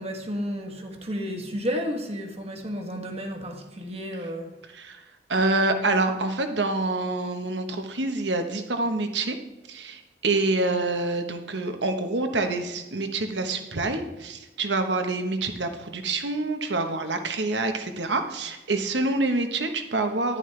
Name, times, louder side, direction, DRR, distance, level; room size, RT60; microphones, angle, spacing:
voice 1, 0.0-4.6, equal, 35° right, 1.5 m, -32 dB
voice 2, 5.3-9.4 9.7-20.4, right 2 dB, 80° right, 1.2 m, -26 dB
11.0 x 10.5 x 3.3 m
head